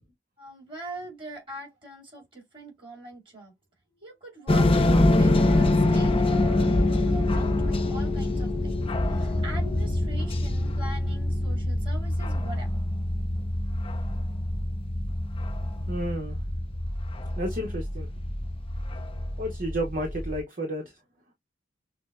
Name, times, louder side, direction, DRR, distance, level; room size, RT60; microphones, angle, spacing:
voice 1, 0.4-3.5 3.9-12.7, right 2 dB, 30° right, 2.6 m, -42 dB
sound 1, 4.5-20.4, left 1 dB, 30° left, 0.5 m, -25 dB
voice 2, 15.9-16.4 17.4-18.1 19.4-20.9, right 1 dB, 50° right, 0.9 m, -31 dB
6.1 x 2.1 x 2.4 m
head